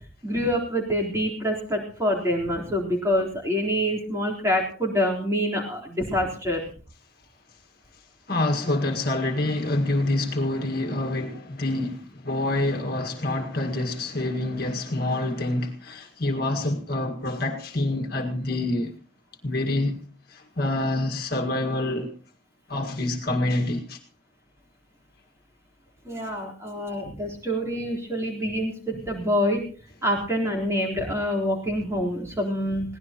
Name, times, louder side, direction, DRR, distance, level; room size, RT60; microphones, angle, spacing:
voice 1, 0.2-6.6 26.1-29.6 30.0-33.0, equal, 15° right, 3.9 m, -26 dB
voice 2, 8.3-18.9 19.4-20.0 20.3-22.1 22.7-24.0, left 2 dB, 50° left, 1.9 m, -26 dB
22.0 x 17.5 x 3.0 m
head